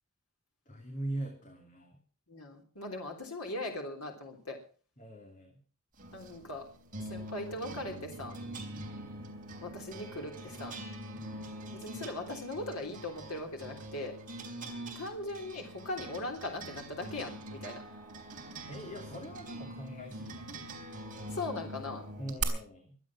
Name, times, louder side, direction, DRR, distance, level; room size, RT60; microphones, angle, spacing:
voice 1, 0.7-2.0 5.0-5.6 8.7-9.0 11.1-11.5 18.7-20.7 22.2-23.0, right 1 dB, 35° left, 3 dB, 2.6 m, -42 dB
voice 2, 2.3-4.6 6.1-6.7 7.1-8.4 9.6-10.8 11.7-14.2 15.0-17.8 21.3-22.1, left 2 dB, 90° left, 2 dB, 3.5 m, -39 dB
sound 1, 6.0-22.4, right 2 dB, 40° right, 3.9 m, -44 dB
24.0 x 8.9 x 6.0 m, 0.40 s
head